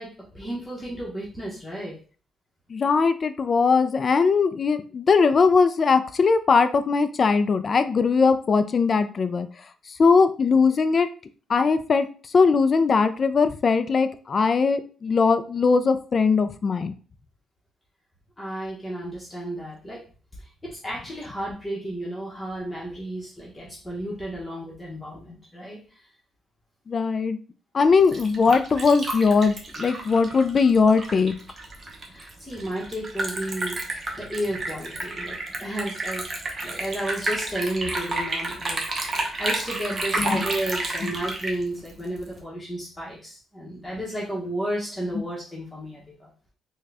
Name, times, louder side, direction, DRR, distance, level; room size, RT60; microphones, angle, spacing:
voice 1, 0.0-2.0 18.4-20.0 20.4-26.1 32.1-33.8 34.1-36.3 36.6-46.3, right 1 dB, 15° left, -5 dB, 1.0 m, -33 dB
voice 2, 2.7-9.5 10.0-11.1 11.5-12.1 12.3-16.9 26.9-27.4 27.7-31.3 40.2-40.4 41.0-41.1, left 5 dB, 45° left, 11 dB, 0.4 m, -20 dB
Liquid, 27.8-42.4, right 2 dB, 35° right, 0.8 m, -31 dB
3.6 x 2.2 x 3.3 m, 0.39 s
cardioid pair, 90°, 0 cm